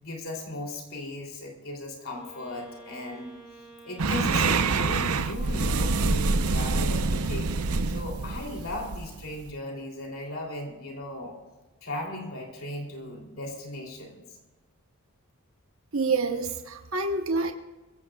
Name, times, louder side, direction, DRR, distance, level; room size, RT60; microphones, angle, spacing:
voice 1, 0.0-3.4 3.8-11.4 11.8-14.3, left 1 dB, 65° left, 0 dB, 3.2 m, -37 dB
Wind instrument woodwind instrument, 2.1-6.5, right 2 dB, ahead, 5.7 m, -50 dB
sound 1, 4.0-9.5, right 3 dB, 85° right, 0.8 m, -26 dB
voice 2, 15.9-17.5, right 3 dB, 65° right, 5 dB, 1.1 m, -27 dB
23.0 x 16.5 x 2.4 m, 1.2 s
head